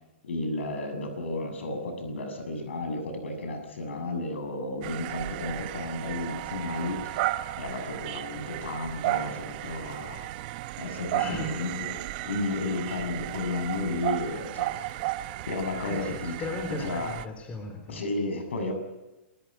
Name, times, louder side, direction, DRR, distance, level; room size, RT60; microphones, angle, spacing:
voice 1, 0.2-7.2 7.6-10.3 10.8-11.9 12.2-15.2 15.5-16.4 16.8-17.2 17.9-18.7, left 2 dB, 90° left, 6 dB, 7.3 m, -33 dB
sound 1, 4.8-17.2, right 16 dB, 50° right, 1.1 m, -34 dB
voice 2, 11.2-11.6 15.8-18.0, left 2 dB, 20° left, 4 dB, 3.7 m, -36 dB
28.0 x 14.0 x 9.3 m, 1.0 s
hypercardioid pair, 145°, 6 cm